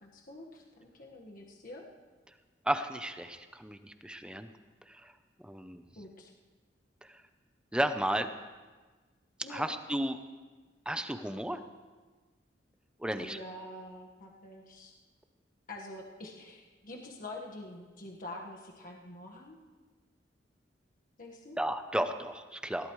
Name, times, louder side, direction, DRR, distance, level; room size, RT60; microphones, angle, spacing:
voice 1, 0.0-1.9 5.9-6.3 9.4-9.7 13.2-14.9 15.7-19.6 21.2-21.6, left 1 dB, 50° left, -1 dB, 1.6 m, -46 dB
voice 2, 2.6-4.5 4.9-5.1 5.4-5.8 7.7-8.3 9.5-10.2 10.9-11.6 13.0-13.4 21.6-22.9, right 1 dB, 5° right, 8 dB, 0.7 m, -33 dB
20.5 x 17.0 x 3.2 m, 1.4 s
head